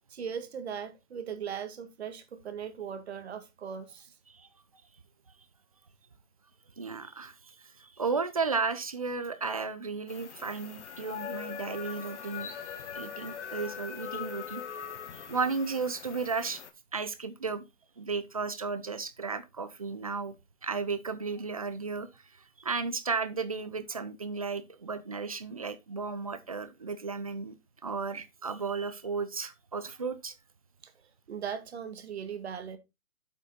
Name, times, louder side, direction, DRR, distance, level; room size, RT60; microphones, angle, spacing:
voice 1, 0.1-4.1 30.8-30.9 31.3-32.8, right 7 dB, 45° right, 1.7 m, -39 dB
voice 2, 6.8-12.5 12.9-14.6 15.1-16.6 16.9-17.6 18.0-20.3 20.6-27.5 27.8-30.3, right 4 dB, 25° right, 0.5 m, -34 dB
sound 1, 10.1-16.7, left 7 dB, 50° left, 1.4 m, -41 dB
8.1 x 5.5 x 3.9 m
hypercardioid pair, 160°, 43 cm